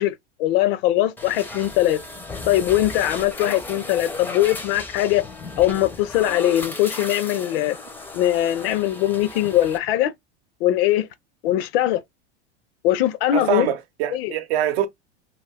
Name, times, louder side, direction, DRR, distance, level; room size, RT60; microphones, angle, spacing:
voice 1, 0.0-2.0 2.5-5.2 5.6-7.8 8.1-10.1 10.6-11.1 11.4-12.0 12.8-13.7 14.1-14.3, left 13 dB, 55° left, 0.6 m, -21 dB
sound 1, 1.2-9.8, left 2 dB, 5° left, 0.5 m, -35 dB
voice 2, 13.3-14.9, right 10 dB, 65° right, 0.8 m, -24 dB
2.5 x 2.3 x 3.3 m
hypercardioid pair, 95°, 34 cm